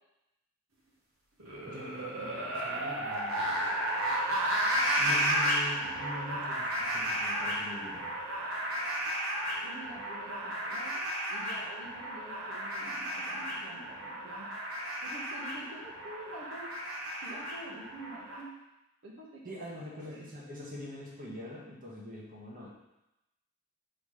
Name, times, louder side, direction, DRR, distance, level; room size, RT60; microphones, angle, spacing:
sound 1, 1.4-18.4, right 1 dB, 85° right, 1.5 m, -33 dB
voice 1, 1.7-3.5 4.9-8.2 19.4-22.7, left 1 dB, 45° right, -4 dB, 1.4 m, -43 dB
voice 2, 9.6-14.5 15.0-16.7 17.2-18.5 19.0-19.8 20.1-20.3, right 1 dB, 70° right, -4 dB, 1.3 m, -47 dB
5.7 x 4.3 x 5.0 m, 0.94 s
head